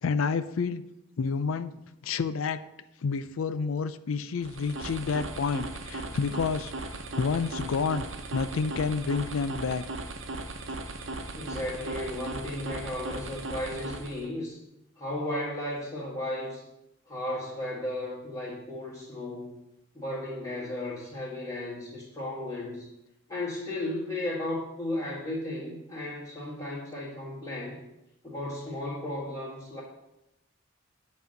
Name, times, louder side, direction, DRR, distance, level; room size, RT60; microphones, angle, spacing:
voice 1, 0.0-0.8 1.2-1.8 2.0-2.7 3.0-8.1 8.3-9.8, left 5 dB, 90° left, 13 dB, 0.5 m, -29 dB
sound 1, 4.4-14.3, right 2 dB, 70° right, 0.9 m, -38 dB
voice 2, 11.3-14.6 15.0-16.6 17.1-19.6 19.9-22.9 23.3-27.8 28.2-29.8, left 1 dB, 20° left, -10 dB, 2.1 m, -35 dB
8.3 x 4.2 x 6.5 m, 0.90 s
head